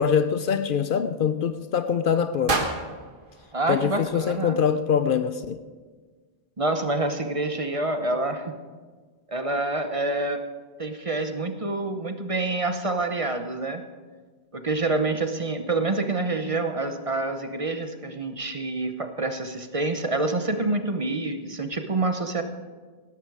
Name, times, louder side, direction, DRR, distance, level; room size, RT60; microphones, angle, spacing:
voice 1, 0.0-2.7 3.7-5.6, left 7 dB, 60° left, 0.7 m, -24 dB
sound 1, 2.5-4.6, right 3 dB, 55° right, 1.5 m, -31 dB
voice 2, 3.5-4.6 6.6-8.6 9.3-10.4 10.8-13.8 14.5-22.4, right 2 dB, 35° right, 0.9 m, -27 dB
17.5 x 11.5 x 4.8 m
omnidirectional pair, 1.0 m